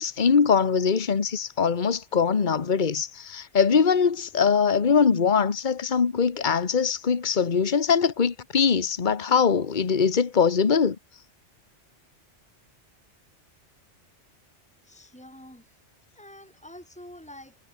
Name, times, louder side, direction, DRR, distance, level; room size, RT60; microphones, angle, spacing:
voice 1, 0.0-11.0, left 6 dB, 45° left, 1.4 m, -22 dB
voice 2, 14.8-15.8 16.2-17.6, left 1 dB, 5° left, 5.3 m, -46 dB
omnidirectional pair, 1.2 m